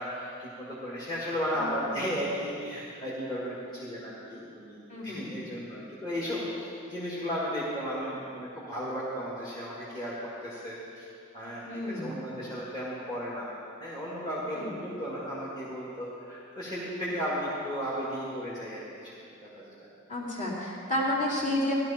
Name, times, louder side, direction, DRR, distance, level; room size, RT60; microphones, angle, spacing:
voice 1, 0.0-11.1 11.3-13.5 13.8-19.7, equal, 20° left, -9 dB, 2.0 m, -35 dB
voice 2, 1.5-2.1 4.9-5.2 11.7-12.1 14.6-14.7 20.1-21.7, left 1 dB, 35° left, -6 dB, 2.9 m, -31 dB
15.0 x 12.0 x 4.4 m, 2.6 s
head